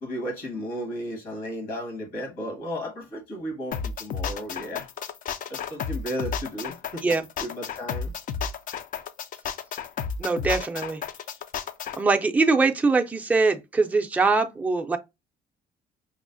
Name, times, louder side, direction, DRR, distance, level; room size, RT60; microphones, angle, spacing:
voice 1, 0.0-4.9 5.5-7.0 7.4-8.1, equal, 80° left, 1.6 m, -34 dB
sound 1, 3.7-12.0, left 6 dB, 55° left, 0.4 m, -32 dB
voice 2, 10.2-11.0 12.0-15.0, right 3 dB, 10° right, 0.4 m, -22 dB
5.4 x 2.0 x 2.6 m
cardioid pair, 110°, 17 cm